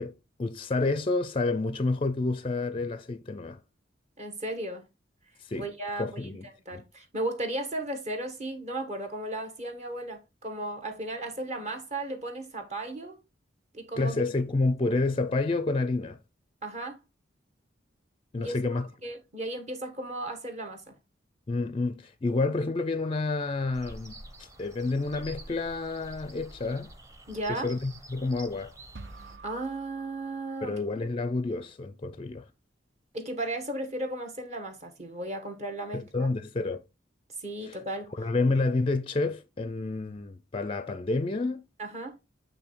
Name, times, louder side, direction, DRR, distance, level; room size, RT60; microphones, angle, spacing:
voice 1, 0.0-3.6 5.4-5.7 6.0-6.4 6.7-6.8 14.0-16.2 18.3-18.9 21.5-24.2 24.6-26.9 27.5-28.7 30.6-32.5 35.9-36.8 37.6-37.8 38.2-41.6, left 3 dB, 30° left, 0.4 m, -29 dB
voice 2, 4.2-4.9 5.5-6.2 6.6-13.2 13.7-14.2 16.6-17.0 18.4-21.0 27.3-27.7 29.4-30.8 33.1-36.3 37.4-38.1 41.8-42.2, right 1 dB, 35° right, 1.2 m, -35 dB
sound 1, 23.7-29.4, right 1 dB, 15° right, 1.0 m, -48 dB
sound 2, 28.9-31.0, right 3 dB, 70° right, 0.7 m, -48 dB
8.3 x 3.1 x 4.4 m
head